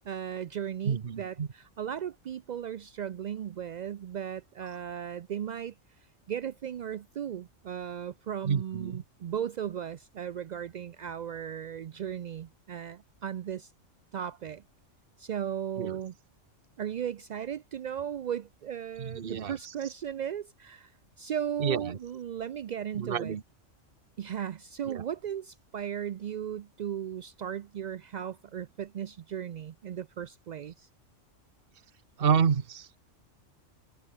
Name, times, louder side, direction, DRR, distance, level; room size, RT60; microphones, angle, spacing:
voice 1, 0.1-5.7 6.3-13.7 14.1-14.6 15.2-16.1 16.8-20.9 21.2-23.4 24.2-30.9, right 9 dB, 75° right, 0.4 m, -36 dB
voice 2, 0.8-1.5 8.4-9.0 15.8-16.0 19.0-19.6 21.6-22.0 22.9-23.4 24.9-25.0 32.2-32.9, right 7 dB, 50° right, 1.2 m, -29 dB
omnidirectional pair, 1.3 m